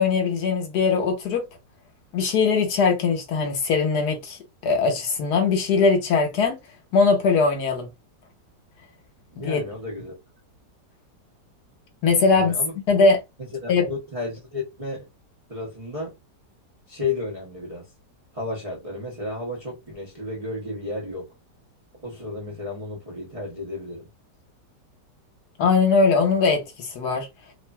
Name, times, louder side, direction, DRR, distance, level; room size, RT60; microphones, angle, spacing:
voice 1, 0.0-1.4 2.1-4.4 4.6-6.5 6.9-7.9 9.4-9.6 12.0-12.5 12.9-13.2 13.7-13.9 25.6-27.3, left 4 dB, 70° left, 1.3 m, -20 dB
voice 2, 9.3-10.2 12.3-12.7 13.6-15.1 15.5-16.1 16.9-17.9 18.3-21.3 22.0-24.1, left 3 dB, 45° right, 0.4 m, -32 dB
3.0 x 2.5 x 2.2 m
omnidirectional pair, 1.9 m